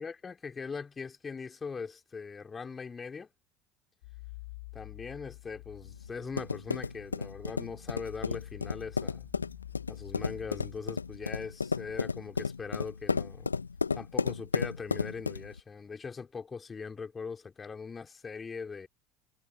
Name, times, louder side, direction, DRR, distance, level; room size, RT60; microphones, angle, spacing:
voice 1, 0.0-3.3 4.7-9.3 9.9-13.5 13.9-18.9, left 5 dB, 25° left, 3.4 m, -41 dB
sound 1, 4.0-11.5, left 23 dB, 65° left, 1.5 m, -49 dB
sound 2, 5.8-15.6, left 5 dB, 90° left, 1.3 m, -33 dB
figure-of-eight pair, 70°, 0 cm